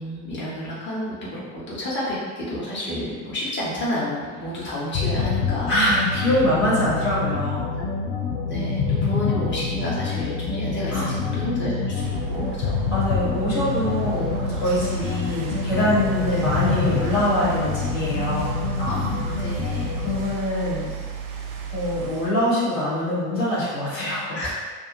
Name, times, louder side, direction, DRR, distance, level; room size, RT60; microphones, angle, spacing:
voice 1, 0.0-5.7 8.5-12.8 18.8-19.9 24.3-24.6, left 1 dB, 25° left, -8 dB, 1.1 m, -30 dB
sound 1, 4.9-20.3, left 5 dB, 50° left, 0.5 m, -26 dB
voice 2, 5.7-7.7 10.9-11.4 12.9-18.6 20.0-20.9 21.7-24.4, left 1 dB, 70° left, -9 dB, 1.2 m, -24 dB
sound 2, 12.0-22.3, right 7 dB, 50° right, 0.5 m, -34 dB
2.5 x 2.3 x 2.8 m, 1.5 s
figure-of-eight pair, 60°, 42 cm